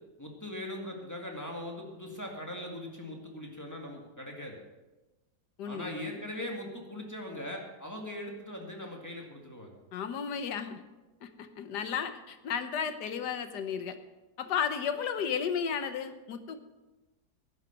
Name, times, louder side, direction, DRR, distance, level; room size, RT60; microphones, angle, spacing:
voice 1, 0.2-4.6 5.6-9.8, left 1 dB, 10° left, 0 dB, 1.9 m, -40 dB
voice 2, 5.6-6.2 9.9-10.8 11.2-14.0 14.4-16.6, left 7 dB, 80° left, 9 dB, 1.6 m, -33 dB
11.5 x 11.0 x 5.9 m, 1.1 s
omnidirectional pair, 1.8 m